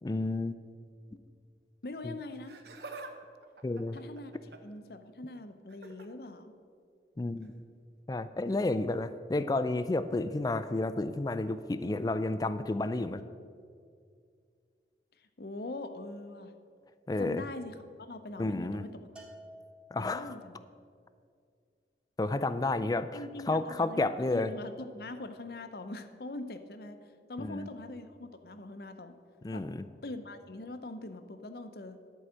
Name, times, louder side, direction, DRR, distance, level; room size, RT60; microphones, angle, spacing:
voice 1, 0.0-0.5 2.0-2.2 3.6-4.0 7.2-7.5 8.1-13.2 17.1-17.4 18.4-18.8 19.9-20.3 22.2-23.2 23.5-24.5 27.4-27.7 29.4-29.8, left 2 dB, 20° left, 12 dB, 0.3 m, -31 dB
voice 2, 1.8-2.6 3.9-4.3 4.6-6.5 15.2-16.5 17.2-19.0 20.0-20.6 23.1-29.2 29.5-29.6 30.0-32.0, left 2 dB, 55° left, 9 dB, 0.7 m, -43 dB
Laughter, 2.3-3.1 3.4-4.8 5.7-6.1 7.4-7.6 8.5-8.6, right 3 dB, 65° right, 0.8 m, -47 dB
Bell, 19.2-20.5, equal, 5° right, 1.3 m, -52 dB
11.0 x 4.8 x 7.5 m, 2.2 s
head